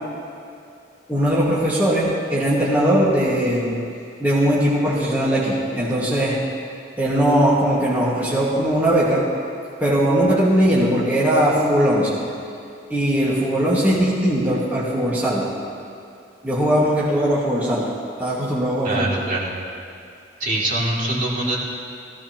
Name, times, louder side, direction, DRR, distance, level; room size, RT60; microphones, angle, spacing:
voice 1, 1.1-3.8 4.2-6.4 7.0-9.3 9.8-12.2 12.9-15.5 16.4-17.9 18.2-19.1, equal, 10° right, -8 dB, 1.7 m, -19 dB
voice 2, 18.8-19.5 20.4-21.6, right 1 dB, 45° right, -6 dB, 2.5 m, -23 dB
17.0 x 16.0 x 2.9 m, 2.4 s
head